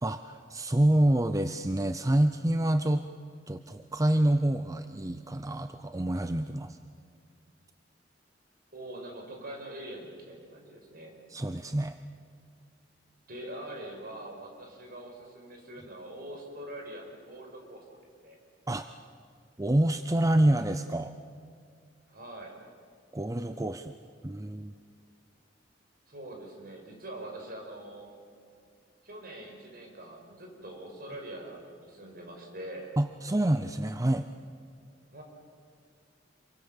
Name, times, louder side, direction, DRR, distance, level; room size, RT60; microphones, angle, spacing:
voice 1, 0.0-3.0 3.5-6.8 11.3-12.0 18.7-18.9 19.6-21.1 23.1-24.0 24.2-24.7 33.0-34.3, right 1 dB, 20° right, 9 dB, 0.6 m, -27 dB
voice 2, 8.7-11.1 13.3-17.8 18.2-18.4 22.1-22.5 26.1-28.1 29.0-32.9 35.1-35.2, right 1 dB, 55° right, 2 dB, 5.8 m, -43 dB
27.5 x 24.0 x 7.3 m, 2.2 s
head